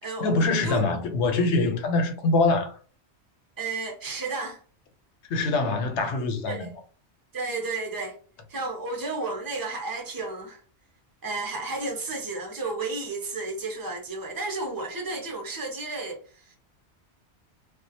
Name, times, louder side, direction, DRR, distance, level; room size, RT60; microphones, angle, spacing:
voice 1, 0.2-2.7 5.3-6.7, left 3 dB, 80° left, 0.9 m, -24 dB
voice 2, 3.6-4.6 6.5-6.7 7.3-8.2 8.5-10.6 11.2-16.6, right 3 dB, 30° right, 0.4 m, -32 dB
2.4 x 2.1 x 2.6 m
omnidirectional pair, 1.2 m